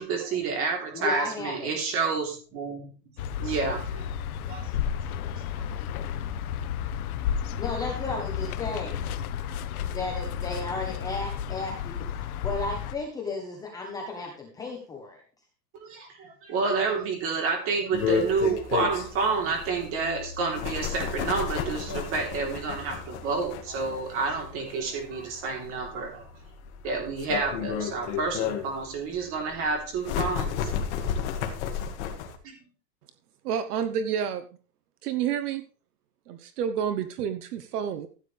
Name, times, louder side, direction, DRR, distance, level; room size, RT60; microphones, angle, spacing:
voice 1, 0.0-2.9 3.4-4.0 4.5-4.7 15.7-26.3 26.8-30.7 32.4-32.6, right 4 dB, 25° right, 2 dB, 3.4 m, -29 dB
voice 2, 0.9-1.7 7.6-9.0 9.8-15.2, left 3 dB, 5° left, 0 dB, 0.9 m, -34 dB
sound 1, 3.2-13.0, left 8 dB, 60° left, 1.1 m, -32 dB
sound 2, 17.9-32.4, left 7 dB, 45° left, 2.0 m, -33 dB
voice 3, 33.4-34.5 35.0-35.6 36.3-38.1, right 8 dB, 65° right, 10 dB, 1.2 m, -29 dB
15.0 x 9.0 x 3.3 m, 0.38 s
supercardioid pair, 175°, 49 cm